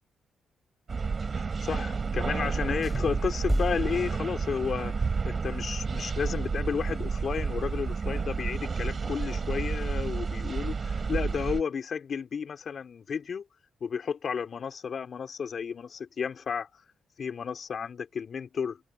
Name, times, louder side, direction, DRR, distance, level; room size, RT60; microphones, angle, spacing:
sound 1, 0.9-11.6, right 5 dB, 35° right, 7.8 m, -31 dB
voice 1, 1.4-13.4 13.8-16.8 17.2-18.8, left 6 dB, 50° left, 4.4 m, -32 dB
sound 2, 2.8-5.0, equal, 5° left, 4.9 m, -35 dB
cardioid pair, 115°, 0 cm